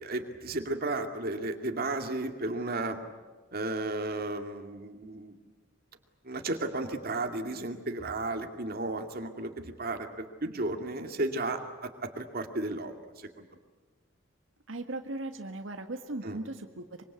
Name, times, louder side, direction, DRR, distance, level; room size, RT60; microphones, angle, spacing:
voice 1, 0.0-3.0 3.5-5.3 6.2-13.4 16.2-16.4, right 2 dB, 50° right, 5 dB, 2.4 m, -34 dB
voice 2, 14.7-17.0, right 2 dB, 85° right, 5 dB, 1.7 m, -38 dB
25.0 x 24.0 x 8.4 m, 1.4 s
head